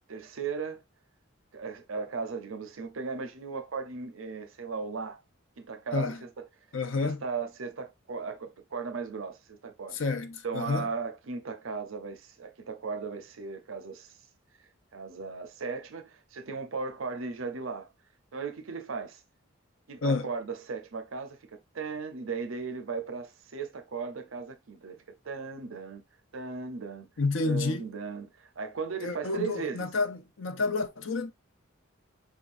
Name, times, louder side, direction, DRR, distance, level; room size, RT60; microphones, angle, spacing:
voice 1, 0.1-0.8 1.5-5.2 5.6-6.5 7.0-10.0 10.4-14.2 14.9-17.9 18.3-19.2 19.9-26.0 26.3-27.1 27.4-29.9, right 5 dB, 80° right, 0.7 m, -37 dB
voice 2, 6.7-7.2 9.9-10.9 20.0-20.3 27.2-27.8 29.0-31.3, left 3 dB, 70° left, 0.7 m, -29 dB
5.0 x 3.7 x 2.5 m
head